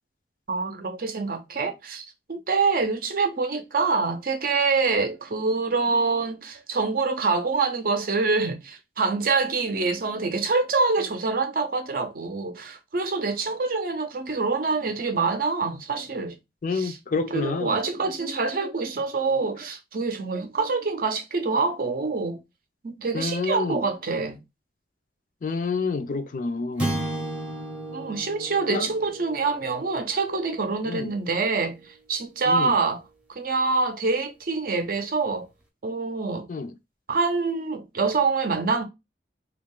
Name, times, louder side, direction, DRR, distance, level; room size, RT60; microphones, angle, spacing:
voice 1, 0.5-16.4 16.7-17.0 17.3-22.4 22.8-24.4 27.9-33.0 33.3-35.5 35.8-36.5 37.1-38.8, right 4 dB, 50° right, 0.6 m, -26 dB
voice 2, 16.6-17.8 23.1-23.9 25.4-26.9 28.7-28.9 30.8-31.1 32.5-32.7 36.5-36.7, left 4 dB, 45° left, 0.4 m, -28 dB
sound 1, 26.8-31.3, right 1 dB, 5° right, 0.7 m, -34 dB
3.1 x 2.4 x 3.6 m
head